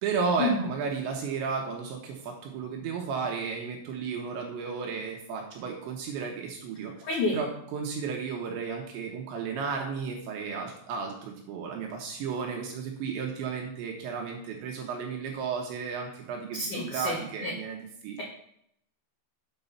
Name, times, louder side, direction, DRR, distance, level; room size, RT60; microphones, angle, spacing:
voice 1, 0.0-6.9 7.3-18.2, right 5 dB, 75° right, 1 dB, 2.9 m, -33 dB
voice 2, 7.0-7.4 16.7-17.5, left 2 dB, 75° left, -4 dB, 1.9 m, -29 dB
8.0 x 5.3 x 5.6 m, 0.71 s
omnidirectional pair, 6.0 m